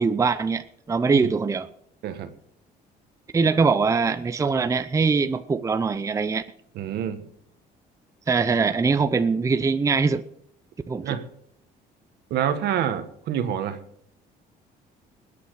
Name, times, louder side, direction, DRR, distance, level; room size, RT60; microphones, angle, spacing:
voice 1, 0.0-1.7 3.3-6.4 8.3-10.2 10.9-11.2, right 4 dB, 20° right, 11 dB, 0.6 m, -22 dB
voice 2, 6.7-7.2 11.0-11.2 12.3-13.8, right 9 dB, 75° right, 9 dB, 1.5 m, -27 dB
20.5 x 8.5 x 4.8 m, 0.70 s
cardioid pair, 110°, 17 cm